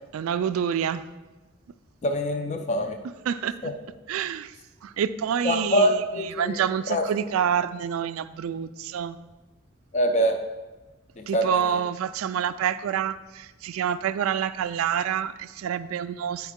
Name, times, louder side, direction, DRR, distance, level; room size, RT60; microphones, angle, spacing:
voice 1, 0.1-1.1 3.3-3.6 4.1-4.5 4.8-6.0 6.4-9.2 11.3-16.5, right 8 dB, 80° right, 14 dB, 0.3 m, -27 dB
voice 2, 2.0-3.0 3.6-3.7 5.4-6.6 6.9-7.0 9.9-10.4 11.3-11.6, equal, 35° left, 5 dB, 0.5 m, -24 dB
9.1 x 4.7 x 3.6 m, 1.2 s
head